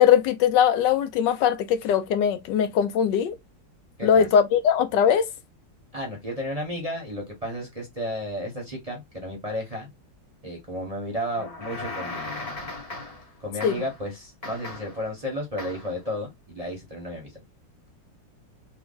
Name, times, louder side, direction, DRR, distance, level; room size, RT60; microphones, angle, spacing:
voice 1, 0.0-3.4 4.0-5.3 13.6-13.7, left 8 dB, 75° left, 1.2 m, -20 dB
voice 2, 5.9-9.9 10.4-12.7 13.4-17.3, equal, 25° right, 0.9 m, -33 dB
sound 1, 11.3-13.3 13.6-14.0 14.4-15.0 15.6-16.0, left 2 dB, 25° left, 0.9 m, -37 dB
3.5 x 2.3 x 3.8 m
omnidirectional pair, 2.0 m